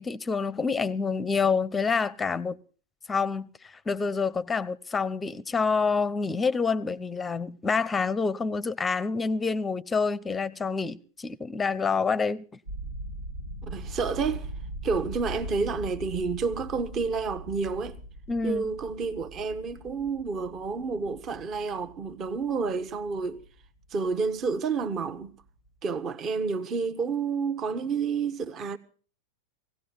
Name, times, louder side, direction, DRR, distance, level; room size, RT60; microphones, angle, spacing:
voice 1, 0.0-2.6 3.1-12.4 18.3-18.6, left 5 dB, 15° left, 0.7 m, -27 dB
sound 1, 12.7-24.5 24.8-25.2 25.5-25.7, right 1 dB, 85° right, 2.4 m, -41 dB
voice 2, 13.6-14.5 14.8-18.0 18.4-23.4 23.9-25.3 25.8-28.8, right 5 dB, 30° right, 1.2 m, -30 dB
19.0 x 16.5 x 4.1 m
figure-of-eight pair, 90°, 0 cm